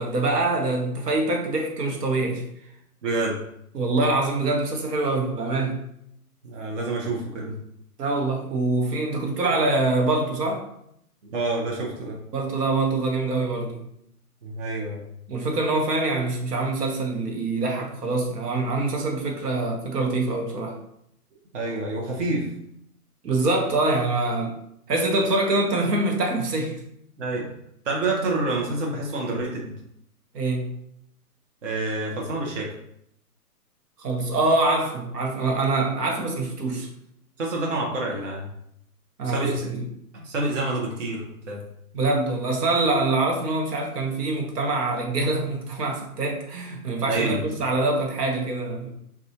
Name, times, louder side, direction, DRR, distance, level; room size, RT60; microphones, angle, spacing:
voice 1, 0.0-2.4 3.7-5.8 8.0-10.6 12.3-13.8 15.3-20.8 23.2-24.5 24.9-26.8 30.3-30.7 34.0-36.9 39.2-39.8 41.9-48.9, right 2 dB, 80° right, 2 dB, 1.0 m, -24 dB
voice 2, 3.0-3.4 6.4-7.6 11.2-12.2 14.4-15.0 21.5-22.5 27.2-27.5 27.8-29.7 31.6-32.7 37.4-38.5 39.2-39.7 40.1-41.6 47.1-47.4, right 2 dB, 50° right, -2 dB, 0.8 m, -28 dB
4.0 x 2.3 x 2.7 m, 0.73 s
hypercardioid pair, 165°, 47 cm